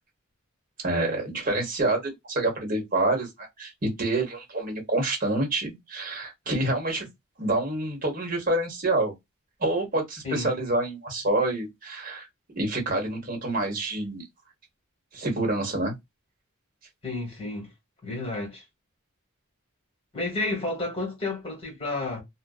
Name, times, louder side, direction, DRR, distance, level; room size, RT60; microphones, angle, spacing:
voice 1, 0.8-2.0 2.3-7.1 7.4-9.1 9.6-12.3 12.5-14.2 15.1-15.9, right 2 dB, 40° right, 1.1 m, -27 dB
voice 2, 17.0-17.7 18.0-18.6 20.1-22.2, left 2 dB, 25° left, 1.5 m, -31 dB
2.5 x 2.1 x 2.3 m
head